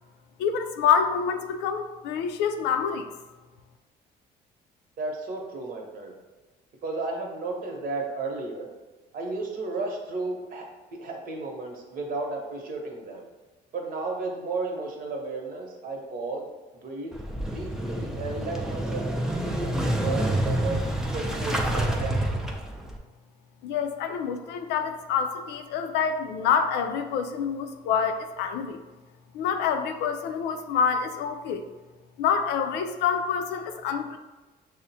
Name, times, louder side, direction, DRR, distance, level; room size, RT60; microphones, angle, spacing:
voice 1, 0.4-3.1 23.6-28.8 29.3-31.6 32.2-34.2, left 7 dB, 85° left, 7 dB, 0.4 m, -27 dB
voice 2, 5.0-6.1 6.8-8.7 9.1-10.6 11.0-13.2 13.7-16.5 16.8-17.1 17.5-20.8 21.1-22.4, right 3 dB, 55° right, 1 dB, 0.9 m, -33 dB
Motorcycle / Engine starting, 17.1-23.0, right 1 dB, 5° right, 0.4 m, -28 dB
6.2 x 2.1 x 2.7 m, 1.2 s
cardioid pair, 110°, 17 cm